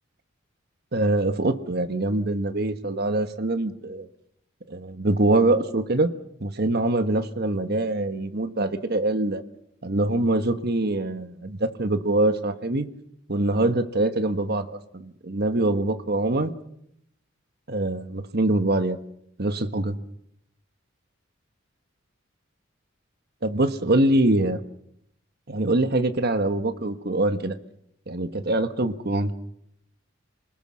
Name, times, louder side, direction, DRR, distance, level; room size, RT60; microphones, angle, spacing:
voice 1, 0.9-4.1 4.7-6.1 6.4-9.4 9.8-12.9 13.3-16.5 17.7-19.0 19.4-20.0 23.4-24.6 25.5-27.5 28.1-29.3, right 2 dB, 50° right, 9 dB, 1.4 m, -24 dB
28.0 x 20.0 x 6.3 m, 0.75 s
head